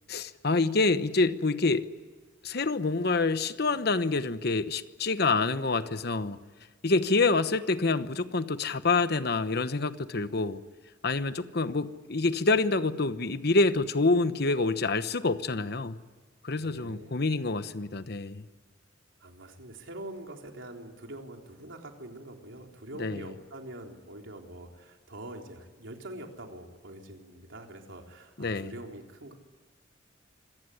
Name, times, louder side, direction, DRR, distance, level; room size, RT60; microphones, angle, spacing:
voice 1, 0.1-1.9 2.4-6.4 6.8-10.6 11.0-16.0 16.4-18.5 23.0-23.2 28.4-28.7, left 3 dB, 55° left, 12 dB, 1.1 m, -27 dB
voice 2, 16.6-17.2 19.2-29.3, right 1 dB, 75° right, 2 dB, 3.8 m, -44 dB
26.0 x 18.0 x 10.0 m, 1.4 s
head